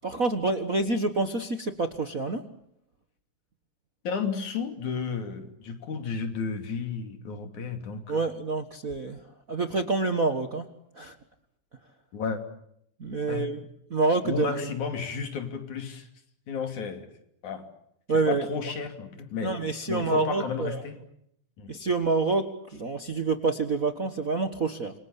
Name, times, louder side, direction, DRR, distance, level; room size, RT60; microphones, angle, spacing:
voice 1, 0.0-2.4 8.1-9.2 9.5-10.7 11.0-11.1 13.0-13.6 13.9-14.7 18.1-18.5 19.4-20.8 21.7-24.9, right 3 dB, 40° right, 7 dB, 1.3 m, -27 dB
voice 2, 4.0-8.2 12.1-12.4 13.3-13.4 14.2-16.1 16.5-17.1 17.4-17.7 18.1-21.0 21.6-21.7, left 5 dB, 75° left, 6 dB, 4.3 m, -33 dB
28.0 x 25.0 x 8.3 m, 0.74 s
omnidirectional pair, 3.5 m